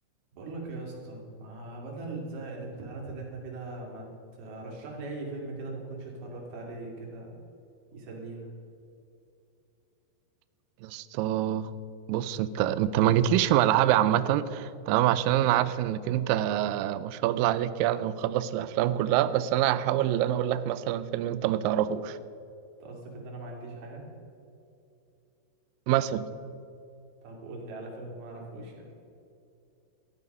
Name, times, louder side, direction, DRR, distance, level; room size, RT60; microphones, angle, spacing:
voice 1, 0.3-4.1 4.3-7.4 7.9-8.5 22.8-24.0 27.2-28.8, right 2 dB, 70° right, -1 dB, 4.3 m, -40 dB
voice 2, 10.8-11.7 12.1-22.2 25.9-26.3, right 12 dB, 90° right, 14 dB, 2.0 m, -25 dB
13.5 x 11.0 x 5.4 m, 2.7 s
omnidirectional pair, 4.6 m